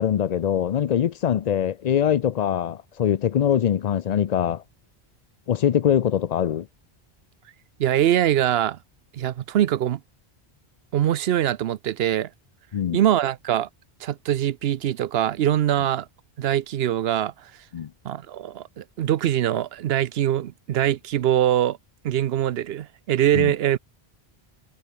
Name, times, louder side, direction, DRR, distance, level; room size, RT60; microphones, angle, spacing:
voice 1, 0.0-4.6 5.5-6.7 12.7-13.0 17.7-17.9 23.3-23.5, left 9 dB, 50° left, 0.5 m, -23 dB
voice 2, 7.8-8.8 9.1-10.0 10.9-12.3 12.9-13.7 14.0-16.1 16.4-17.3 18.0-21.8 22.0-23.8, right 11 dB, 70° right, 0.9 m, -23 dB
omnidirectional pair, 1.1 m